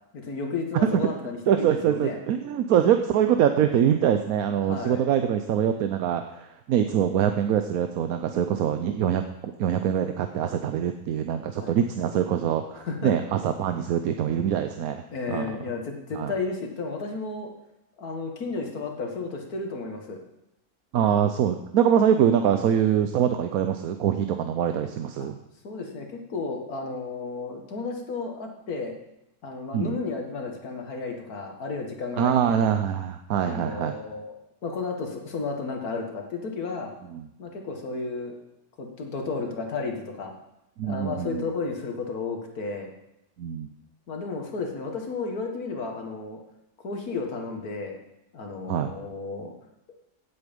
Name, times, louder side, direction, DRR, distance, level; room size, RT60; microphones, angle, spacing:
voice 1, 0.1-2.2 4.6-5.0 11.5-11.8 12.8-13.1 15.1-17.5 18.0-20.2 25.2-25.3 25.6-29.0 29.4-32.7 33.5-34.3 34.6-36.9 37.4-38.4 38.8-40.3 40.8-42.9 44.1-46.4 46.8-48.0 48.3-49.5, left 4 dB, 70° left, 2 dB, 2.2 m, -33 dB
voice 2, 1.5-15.0 15.3-15.6 16.1-16.3 20.9-25.4 29.7-30.0 32.2-33.9 37.1-37.2 40.8-41.5 43.4-43.7 48.7-48.9, right 9 dB, 70° right, 7 dB, 1.1 m, -24 dB
16.5 x 8.0 x 5.3 m, 0.86 s
omnidirectional pair, 1.6 m